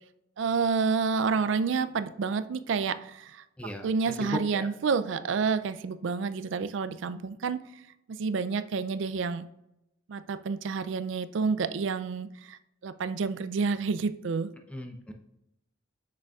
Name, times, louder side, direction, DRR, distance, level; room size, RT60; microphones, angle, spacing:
voice 1, 0.4-3.4 3.8-7.6 8.2-9.5 10.1-14.5, right 5 dB, 60° right, 13 dB, 0.4 m, -29 dB
voice 2, 4.3-4.7 14.7-15.1, equal, 5° left, 4 dB, 0.5 m, -36 dB
6.5 x 6.2 x 2.4 m, 0.85 s
head